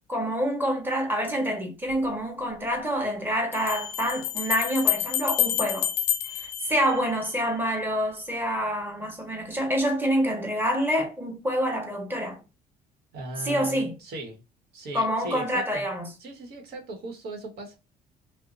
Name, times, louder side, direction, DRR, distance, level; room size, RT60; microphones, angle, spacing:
voice 1, 0.1-5.9 6.3-12.4 13.4-14.0 14.9-16.1, equal, 10° right, 1.1 m, -27 dB
Bell, 1.9-2.0 3.5-7.5, left 12 dB, 75° left, 0.4 m, -28 dB
voice 2, 13.1-14.4 14.7-15.9 16.2-17.8, right 2 dB, 70° right, 1.2 m, -38 dB
2.7 x 2.1 x 3.8 m
cardioid pair, 110°, 17 cm